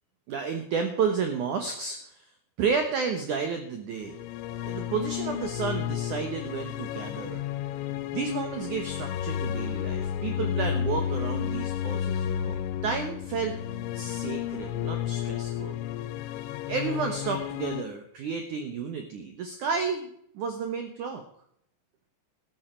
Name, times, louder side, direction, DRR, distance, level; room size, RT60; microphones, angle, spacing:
voice 1, 0.3-2.3 2.6-4.2 4.7-7.4 8.1-13.6 13.9-15.8 16.7-21.2, right 5 dB, 70° right, 6 dB, 1.9 m, -31 dB
sound 1, 4.0-17.8, left 10 dB, 90° left, 3.1 m, -32 dB
13.5 x 12.0 x 4.5 m, 0.70 s
omnidirectional pair, 5.2 m